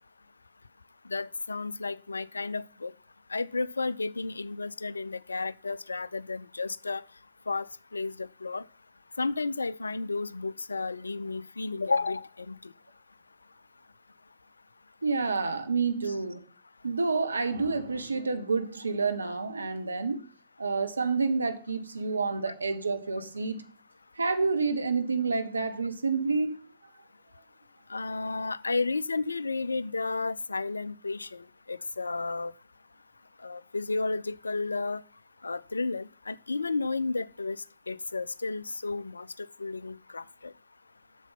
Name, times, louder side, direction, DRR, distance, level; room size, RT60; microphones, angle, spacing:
voice 1, 1.1-2.9 3.3-7.0 7.5-7.7 7.9-8.6 9.2-12.6 16.1-16.2 27.9-32.5 33.4-35.0 35.4-37.6 37.9-40.5, left 3 dB, 80° left, 0.3 m, -32 dB
voice 2, 15.0-16.4 16.8-20.2 20.6-23.6 24.2-26.6, right 4 dB, 80° right, 0.8 m, -29 dB
8.1 x 6.8 x 5.6 m
figure-of-eight pair, 95°, 0 cm